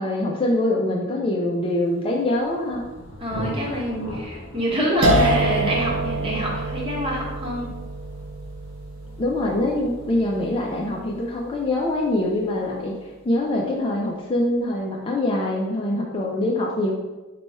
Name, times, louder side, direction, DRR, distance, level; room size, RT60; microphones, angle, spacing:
voice 1, 0.0-2.9 9.2-13.0 13.2-16.9, left 1 dB, 25° left, -1 dB, 0.4 m, -24 dB
Thunder, 2.0-13.5, left 1 dB, 65° left, 0.7 m, -40 dB
voice 2, 3.2-7.7, equal, 25° right, -4 dB, 1.1 m, -26 dB
sound 1, 5.0-12.0, right 1 dB, 70° right, 0.6 m, -26 dB
4.2 x 2.3 x 4.1 m, 1.1 s
head